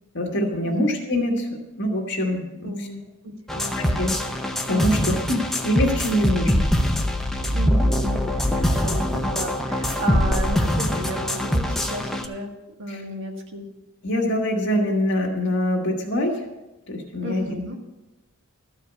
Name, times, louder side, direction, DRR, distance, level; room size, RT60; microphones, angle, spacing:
voice 1, 0.1-2.9 3.8-4.2 4.7-6.7 12.9-13.0 14.0-16.4 16.9-17.5, left 1 dB, 55° left, 0 dB, 1.7 m, -24 dB
voice 2, 2.6-3.0 3.2-3.7 7.5-12.5 12.8-13.6 17.2-17.8, equal, 60° right, 2 dB, 1.7 m, -33 dB
sound 1, 3.5-12.3, equal, ahead, 0.7 m, -23 dB
13.5 x 4.9 x 8.0 m, 1.0 s
head